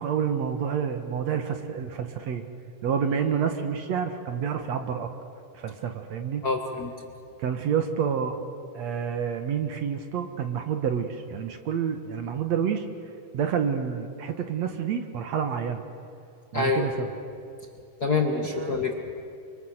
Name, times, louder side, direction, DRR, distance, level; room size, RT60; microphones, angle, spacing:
voice 1, 0.0-2.4 2.8-5.1 5.5-6.4 7.4-8.4 8.7-12.9 13.3-15.8 16.5-17.1 18.5-18.8, right 7 dB, 60° right, 6 dB, 2.4 m, -28 dB
voice 2, 6.4-6.9 16.5-17.1 18.0-18.9, left 4 dB, 35° left, 2 dB, 1.8 m, -26 dB
29.0 x 24.5 x 8.0 m, 2.5 s
omnidirectional pair, 3.7 m